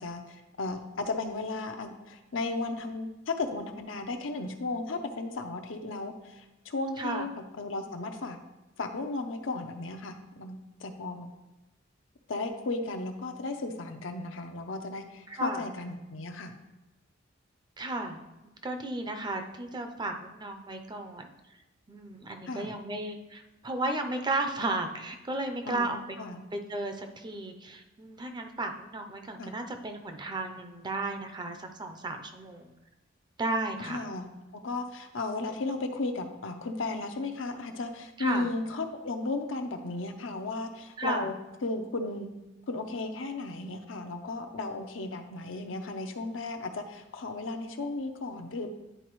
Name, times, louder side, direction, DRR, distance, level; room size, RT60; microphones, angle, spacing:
voice 1, 0.0-8.4 8.8-11.3 12.3-16.6 22.5-22.8 25.7-26.4 29.4-29.5 33.8-34.3 34.5-41.3 41.6-42.3 42.7-48.7, left 3 dB, 80° left, 6 dB, 0.7 m, -35 dB
voice 2, 15.3-15.6 17.8-18.2 18.6-21.3 21.9-26.2 26.5-32.7 33.4-34.0 38.2-38.5 41.0-41.3, right 2 dB, 20° right, 5 dB, 0.5 m, -34 dB
10.0 x 4.0 x 3.1 m, 1.0 s
head